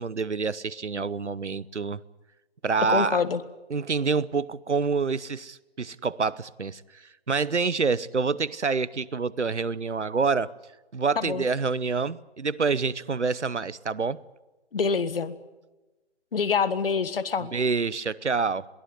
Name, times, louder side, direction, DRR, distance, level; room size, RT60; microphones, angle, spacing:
voice 1, 0.0-2.0 2.6-3.2 3.7-6.8 7.3-10.5 10.9-14.2 17.5-18.7, right 4 dB, 90° right, 20 dB, 1.0 m, -27 dB
voice 2, 2.9-3.4 11.2-11.4 14.7-15.3 16.3-17.5, left 5 dB, 55° left, 12 dB, 1.7 m, -26 dB
22.0 x 16.5 x 9.7 m, 1.1 s
figure-of-eight pair, 145°, 34 cm